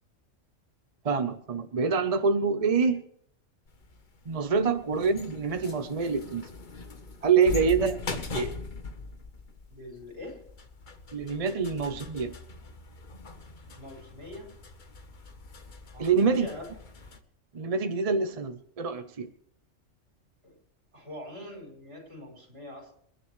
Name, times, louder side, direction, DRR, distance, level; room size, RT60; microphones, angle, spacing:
voice 1, 1.0-3.0 4.3-6.5 7.2-8.0 8.3-8.5 11.1-12.3 16.0-16.5 17.5-19.3, right 5 dB, 35° right, 9 dB, 0.7 m, -26 dB
sound 1, 3.7-17.2, left 3 dB, 40° left, 1.2 m, -41 dB
voice 2, 9.7-10.4 13.7-14.5 15.9-16.6 20.4-20.5 20.9-22.9, left 1 dB, 50° right, 0 dB, 5.1 m, -43 dB
27.5 x 10.5 x 3.2 m, 0.65 s
omnidirectional pair, 1.3 m